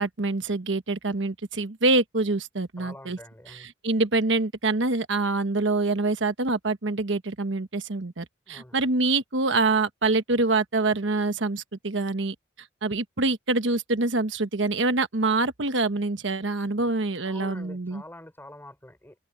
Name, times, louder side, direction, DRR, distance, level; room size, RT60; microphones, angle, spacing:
voice 1, 0.0-3.2 3.5-12.3 12.8-18.0, right 3 dB, 70° right, 1.3 m, -25 dB
voice 2, 2.8-3.7 8.5-8.8 17.2-19.2, left 1 dB, 10° left, 4.6 m, -45 dB
head